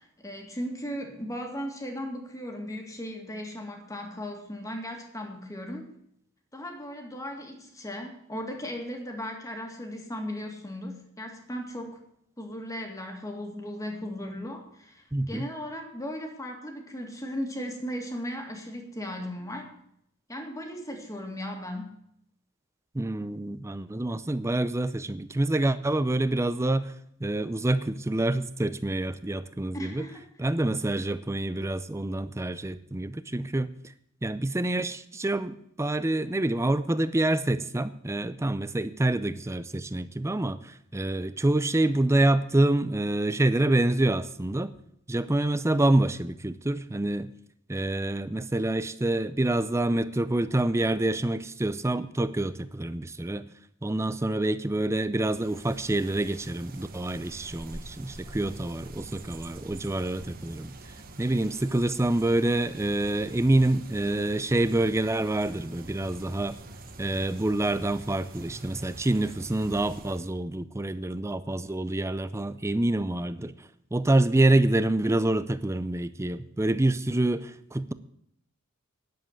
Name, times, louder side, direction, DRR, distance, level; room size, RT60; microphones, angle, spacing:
voice 1, 0.0-5.9 6.5-12.0 12.4-19.7 20.3-22.0 29.7-30.2, equal, 15° left, 3 dB, 2.0 m, -37 dB
voice 2, 15.1-15.5 22.9-26.9 27.2-30.0 30.4-33.7 34.2-44.7 45.1-47.3 47.7-53.5 53.8-60.7 61.2-66.6 67.0-73.5 73.9-77.9, right 1 dB, 15° right, 14 dB, 0.5 m, -27 dB
sound 1, 55.2-70.3, right 2 dB, 40° right, 1.1 m, -46 dB
10.5 x 7.5 x 7.9 m, 0.72 s
head